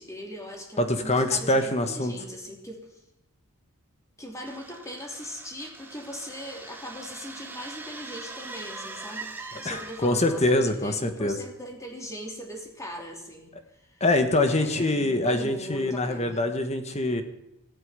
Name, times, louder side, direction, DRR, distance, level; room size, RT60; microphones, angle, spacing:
voice 1, 0.0-3.0 4.2-14.0 14.4-16.4, equal, 15° left, 1 dB, 3.0 m, -40 dB
voice 2, 0.8-2.1 9.6-11.4 14.0-17.2, left 1 dB, 30° left, 7 dB, 1.4 m, -24 dB
sound 1, 4.5-10.4, right 3 dB, 10° right, 1.9 m, -42 dB
15.0 x 9.0 x 9.5 m, 0.86 s
head